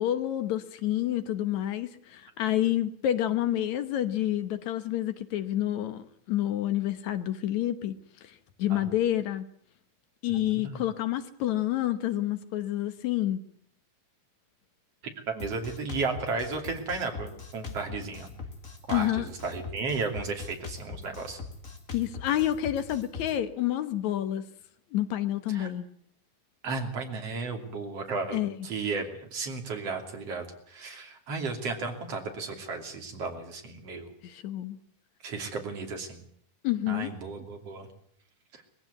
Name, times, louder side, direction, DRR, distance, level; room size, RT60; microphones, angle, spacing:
voice 1, 0.0-8.0 8.2-9.5 10.2-13.5 18.9-19.3 21.9-24.5 24.9-25.9 28.3-28.7 34.2-34.8 36.6-37.1, left 12 dB, 75° left, 11 dB, 2.5 m, -29 dB
voice 2, 10.3-10.8 15.3-18.3 18.9-21.4 25.5-25.7 26.6-34.1 35.2-36.2 36.9-37.9 38.5-38.6, right 4 dB, 55° right, 4 dB, 3.9 m, -34 dB
Drum kit, 15.4-23.3, left 4 dB, 30° left, 2.3 m, -41 dB
22.0 x 15.5 x 9.4 m, 0.64 s
omnidirectional pair, 3.4 m